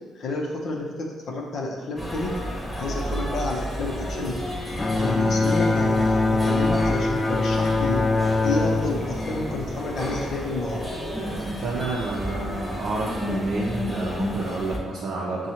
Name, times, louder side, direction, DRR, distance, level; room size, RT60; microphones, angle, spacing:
voice 1, 0.2-2.3 2.8-4.4 4.9-8.0 8.4-10.8, left 2 dB, 65° left, -3 dB, 0.7 m, -30 dB
sound 1, 2.0-14.8, equal, 5° left, 1.1 m, -31 dB
Bowed string instrument, 4.8-10.2, left 3 dB, 30° left, 0.4 m, -23 dB
voice 2, 5.2-5.6 11.6-15.5, right 3 dB, 65° right, -5 dB, 0.6 m, -30 dB
6.1 x 2.3 x 2.8 m, 1.4 s
hypercardioid pair, 50°, 0 cm